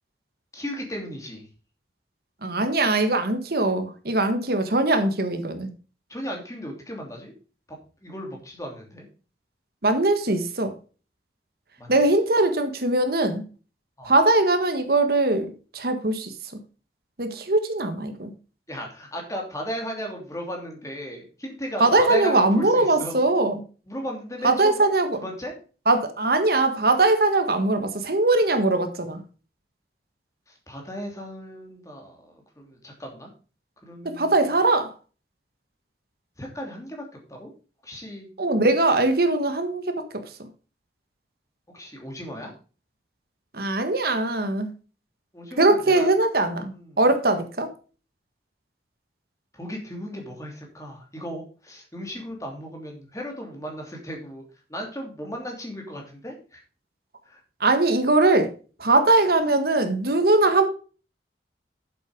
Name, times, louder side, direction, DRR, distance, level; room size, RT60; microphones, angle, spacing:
voice 1, 0.5-1.4 6.1-7.3 8.0-9.1 11.8-12.0 14.0-14.1 18.7-23.2 23.9-24.9 25.2-25.5 30.5-33.3 33.8-34.5 36.4-37.5 37.8-38.3 41.7-42.5 45.3-46.1 46.7-47.0 49.5-54.4 54.7-56.6 57.3-57.4, equal, 20° left, 1 dB, 2.9 m, -36 dB
voice 2, 2.4-5.7 9.8-10.7 11.9-13.4 14.0-16.3 17.2-18.3 21.8-23.5 24.4-25.2 25.9-29.2 34.2-34.9 38.4-40.1 43.5-44.7 45.6-47.7 57.6-58.5 58.8-60.7, right 2 dB, 60° right, 8 dB, 1.5 m, -21 dB
8.5 x 7.8 x 5.1 m, 0.36 s
head